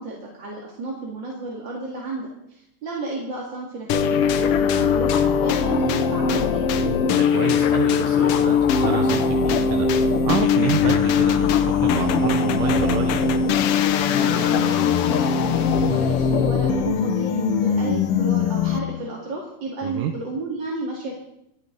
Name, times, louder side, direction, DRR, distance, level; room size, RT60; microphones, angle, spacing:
voice 1, 0.0-6.9 14.1-21.1, right 2 dB, 40° right, -3 dB, 2.6 m, -32 dB
sound 1, 3.9-19.0, left 6 dB, 85° left, 1.2 m, -20 dB
voice 2, 7.1-13.3 19.8-20.1, right 10 dB, 85° right, 5 dB, 2.4 m, -29 dB
26.5 x 9.9 x 3.9 m, 0.79 s
omnidirectional pair, 3.6 m